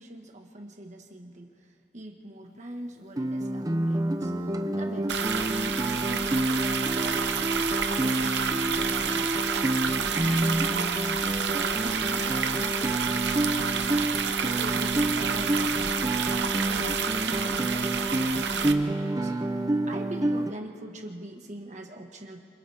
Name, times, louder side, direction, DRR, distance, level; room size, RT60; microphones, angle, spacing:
voice 1, 0.0-7.3 7.8-10.9 11.4-14.0 14.4-19.3 19.9-22.4, right 1 dB, 45° right, 2 dB, 1.7 m, -42 dB
Guitar, 3.2-20.5, right 1 dB, 20° right, 0.7 m, -28 dB
sound 1, 5.1-18.7, right 7 dB, 80° right, 0.9 m, -29 dB
28.5 x 27.0 x 3.6 m, 2.4 s
head